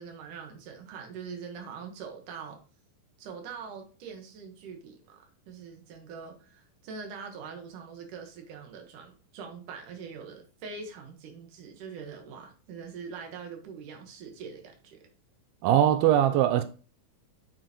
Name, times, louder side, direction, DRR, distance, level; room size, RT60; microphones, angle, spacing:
voice 1, 0.0-2.6 3.2-15.1, right 5 dB, 65° right, 2.8 m, -43 dB
voice 2, 15.6-16.6, right 11 dB, 90° right, 2.5 m, -21 dB
7.6 x 6.8 x 3.0 m
omnidirectional pair, 4.2 m